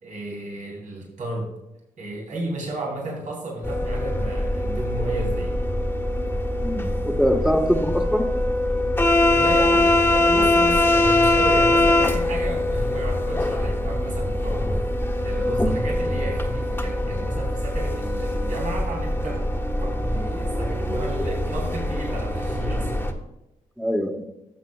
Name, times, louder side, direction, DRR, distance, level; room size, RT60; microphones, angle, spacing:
voice 1, 0.0-1.5 2.0-5.6 9.3-14.8 15.2-19.4 19.8-23.0, right 1 dB, 65° right, -2 dB, 3.4 m, -32 dB
sound 1, 3.6-23.1, left 1 dB, 15° left, 1.6 m, -23 dB
voice 2, 6.6-8.2 15.5-15.6 20.2-20.3 23.8-24.3, equal, 5° right, 5 dB, 1.6 m, -24 dB
12.5 x 7.4 x 2.5 m, 0.92 s
supercardioid pair, 55°, 14 cm